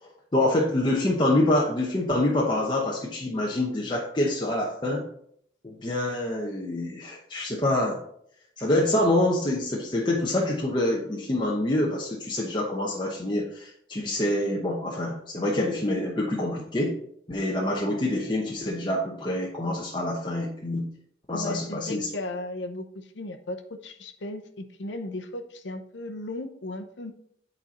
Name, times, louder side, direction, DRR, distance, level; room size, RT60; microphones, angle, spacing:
voice 1, 0.0-5.0 5.6-8.0 8.6-16.9 17.3-20.9 21.3-22.1, left 1 dB, 25° left, -3 dB, 0.8 m, -26 dB
voice 2, 21.3-27.1, left 2 dB, 80° left, 6 dB, 0.7 m, -36 dB
8.8 x 4.3 x 4.2 m, 0.68 s
head